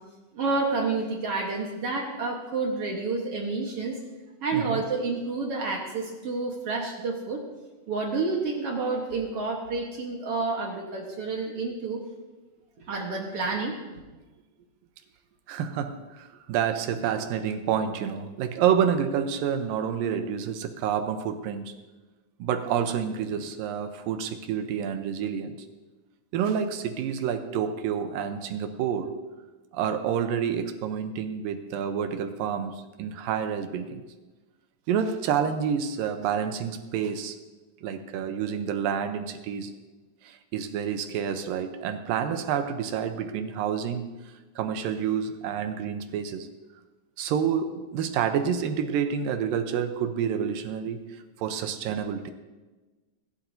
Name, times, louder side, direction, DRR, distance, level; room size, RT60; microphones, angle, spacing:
voice 1, 0.3-4.0 4.4-7.4 7.9-12.0 12.9-13.7, right 3 dB, 60° right, 0 dB, 1.7 m, -29 dB
voice 2, 15.5-21.7 22.4-25.6 26.3-29.1 29.7-34.0 34.9-37.4 37.8-39.7 40.2-44.1 44.6-46.5 47.2-52.3, right 8 dB, 80° right, 7 dB, 2.5 m, -28 dB
19.5 x 11.5 x 2.7 m, 1.2 s
omnidirectional pair, 4.1 m